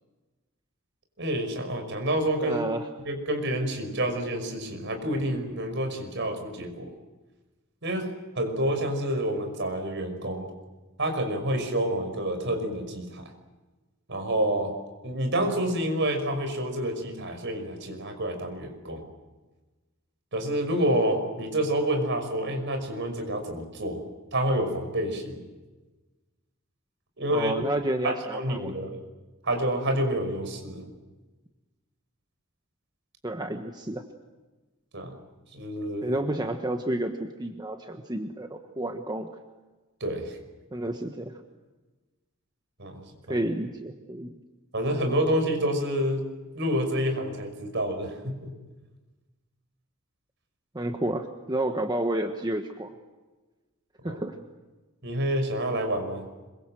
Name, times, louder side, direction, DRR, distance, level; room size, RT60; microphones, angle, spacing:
voice 1, 1.2-2.6 3.0-6.9 7.8-8.1 8.3-10.5 11.0-13.3 14.1-14.7 15.0-19.0 20.3-24.0 24.3-25.4 27.2-27.5 28.0-29.0 29.4-30.9 34.9-35.1 35.5-36.0 40.0-40.4 42.8-43.0 43.3-43.4 44.7-46.3 46.5-48.5 54.0-54.2 55.0-56.2, right 1 dB, 60° right, 6 dB, 5.8 m, -28 dB
voice 2, 2.4-2.8 27.3-28.8 33.2-34.0 36.0-39.3 40.7-41.3 43.3-44.3 50.7-52.9 54.0-54.3, right 1 dB, 20° right, 5 dB, 1.3 m, -30 dB
26.0 x 23.5 x 7.8 m, 1.2 s
head